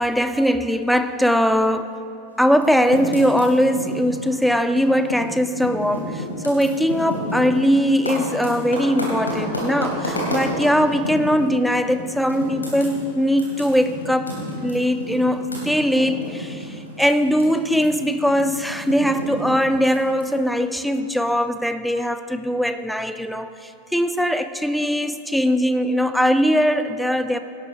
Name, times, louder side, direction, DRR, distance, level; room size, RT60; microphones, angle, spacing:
voice 1, 0.0-2.0 2.4-14.3 14.6-27.4, equal, ahead, 10 dB, 0.5 m, -20 dB
Typing, 2.5-5.3 5.6-11.5 11.9-12.0 12.3-17.4 17.7-20.2, left 1 dB, 80° left, 3.4 m, -30 dB
18.0 x 12.0 x 3.0 m, 2.6 s
figure-of-eight pair, 90°, 0 cm